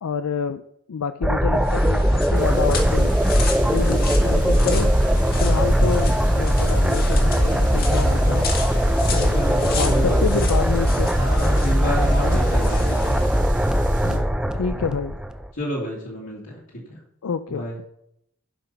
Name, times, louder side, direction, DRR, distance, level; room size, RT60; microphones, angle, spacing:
voice 1, 0.0-0.6 0.9-3.1 3.7-4.9 5.4-8.5 9.1-9.4 9.7-11.1 12.2-12.5 14.0-15.2 17.2-17.8, left 5 dB, 85° left, 12 dB, 0.5 m, -28 dB
sound 1, 1.2-15.5, equal, 5° right, 0.5 m, -20 dB
sound 2, 1.5-13.5, left 3 dB, 45° left, 1.8 m, -32 dB
sound 3, 2.3-14.2, right 1 dB, 35° right, 1.8 m, -28 dB
voice 2, 7.7-8.4 9.3-10.2 11.2-13.2 14.7-14.8 15.6-16.6 16.9-17.0 17.5-17.8, equal, 60° left, -5 dB, 2.4 m, -29 dB
11.0 x 6.0 x 5.7 m, 0.75 s
head